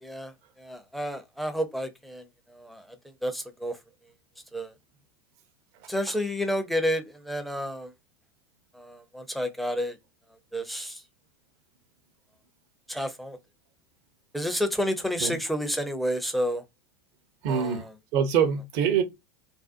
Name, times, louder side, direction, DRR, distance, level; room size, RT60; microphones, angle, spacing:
voice 1, 0.0-3.8 4.5-4.7 5.9-7.9 8.7-10.0 10.3-11.0 12.9-13.4 14.3-16.6 17.5-18.0, equal, ahead, 0.6 m, -30 dB
voice 2, 17.4-17.8 18.1-19.0, right 7 dB, 55° right, 0.8 m, -24 dB
2.6 x 2.1 x 2.5 m
hypercardioid pair, 90°, 14 cm